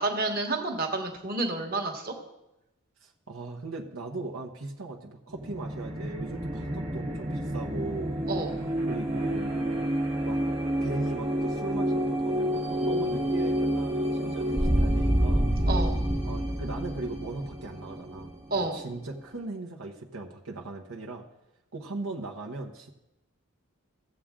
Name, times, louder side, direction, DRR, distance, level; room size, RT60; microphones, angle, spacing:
voice 1, 0.0-2.1 8.3-8.6 15.7-16.0 18.5-18.8, right 2 dB, 45° right, 2 dB, 1.4 m, -30 dB
voice 2, 3.0-8.1 8.9-9.8 10.2-10.4 10.8-15.5 16.2-21.2 21.7-22.9, right 2 dB, 85° right, -1 dB, 1.0 m, -38 dB
sound 1, 5.3-18.8, equal, 30° right, 1.3 m, -28 dB
15.5 x 7.4 x 3.7 m, 0.91 s
head